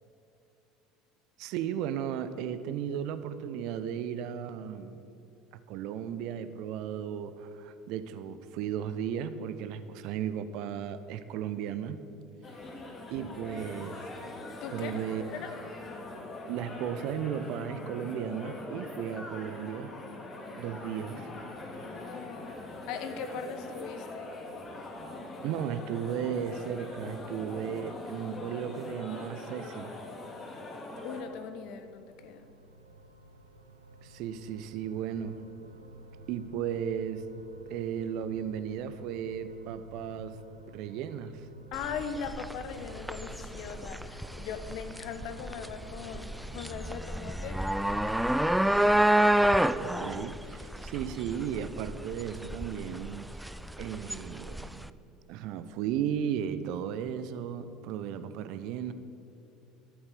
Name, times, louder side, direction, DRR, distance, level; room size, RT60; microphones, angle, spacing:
voice 1, 1.4-5.0 5.7-12.0 13.1-14.1 14.7-15.2 16.5-19.9 20.6-21.3 25.4-29.9 34.0-35.4 36.3-37.2 37.7-40.4 40.7-41.5 49.8-53.3 53.8-54.9 55.3-58.9, right 9 dB, 55° right, 12 dB, 0.8 m, -35 dB
sound 1, 12.4-31.2, left 2 dB, 30° left, 2.4 m, -42 dB
voice 2, 14.6-15.0 15.3-15.5 21.8-24.3 31.0-32.5 41.7-47.6 47.9-48.5, left 6 dB, 55° left, 9 dB, 1.2 m, -40 dB
sound 2, 30.9-49.5, right 1 dB, 85° right, 0.9 m, -52 dB
sound 3, 41.7-54.9, right 1 dB, 5° right, 0.4 m, -29 dB
13.0 x 8.9 x 8.3 m, 2.6 s
figure-of-eight pair, 65°, 0 cm